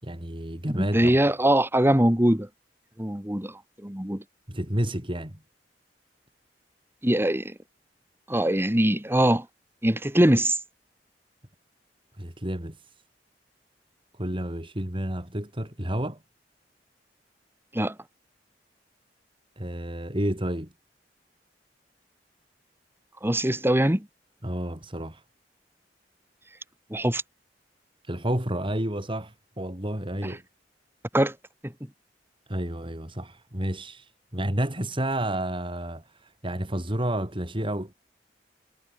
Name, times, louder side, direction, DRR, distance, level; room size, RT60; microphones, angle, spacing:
voice 1, 0.0-1.1 4.5-5.4 12.2-12.9 14.2-16.2 19.6-20.7 24.4-25.2 28.0-30.4 32.5-37.9, right 1 dB, 30° right, 4.4 m, -30 dB
voice 2, 0.7-2.5 3.0-4.2 7.0-7.5 8.3-9.5 9.8-10.6 17.7-18.0 23.2-24.1 26.9-27.2 30.2-30.4 31.1-31.4 31.6-31.7, right 1 dB, 15° right, 2.4 m, -22 dB
head